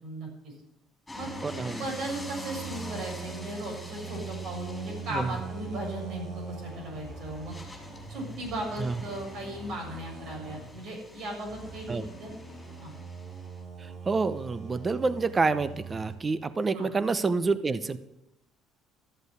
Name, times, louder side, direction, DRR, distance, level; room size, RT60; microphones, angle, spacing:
voice 1, 0.0-0.5 1.1-1.4 1.6-7.6 8.1-12.3 12.8-12.9 16.7-16.9, right 1 dB, 65° right, 0 dB, 6.8 m, -37 dB
sound 1, 1.1-13.6, left 1 dB, 10° left, 3.7 m, -47 dB
sound 2, 1.2-11.0 11.5-16.2, right 5 dB, 50° right, 4.9 m, -42 dB
voice 2, 1.4-1.8 5.1-5.4 8.8-8.9 11.9-12.1 13.8-18.0, right 4 dB, 25° right, 14 dB, 0.8 m, -28 dB
13.5 x 7.9 x 8.1 m, 0.88 s
cardioid pair, 105°, 0 cm